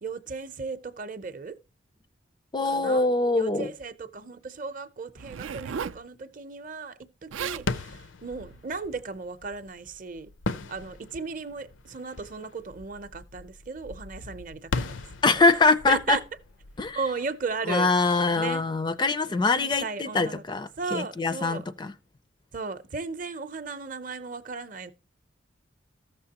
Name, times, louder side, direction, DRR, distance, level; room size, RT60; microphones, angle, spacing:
voice 1, 0.0-1.6 2.7-3.1 3.4-10.3 10.7-15.4 15.9-16.2 16.9-17.9 18.3-18.6 19.6-20.4 20.8-21.6 22.5-24.9, right 4 dB, 45° right, 0.6 m, -35 dB
voice 2, 2.5-3.7 15.2-16.2 16.8-17.0 17.7-21.9, left 3 dB, 25° left, 0.4 m, -23 dB
Zipper (clothing), 5.2-6.0 7.0-7.1 7.3-7.7 8.4-8.6, right 7 dB, 85° right, 0.4 m, -35 dB
sound 1, 7.6-18.2, left 3 dB, 80° left, 0.6 m, -38 dB
14.0 x 6.7 x 2.8 m
head